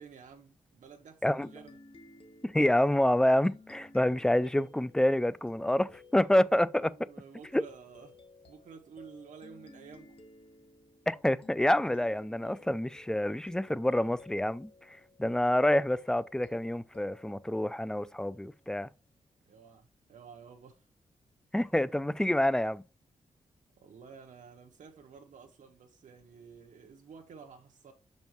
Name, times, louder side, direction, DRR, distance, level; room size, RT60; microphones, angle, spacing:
voice 1, 0.0-1.8 6.8-8.2 8.5-10.2 19.4-20.9 23.8-27.9, right 6 dB, 80° right, 0.9 m, -52 dB
sound 1, 1.4-18.6, left 2 dB, 45° left, 1.2 m, -57 dB
voice 2, 2.4-6.9 7.5-7.6 11.1-18.9 21.5-22.8, left 1 dB, 5° left, 0.3 m, -27 dB
6.3 x 5.2 x 3.0 m
wide cardioid pair, 100°, 13 cm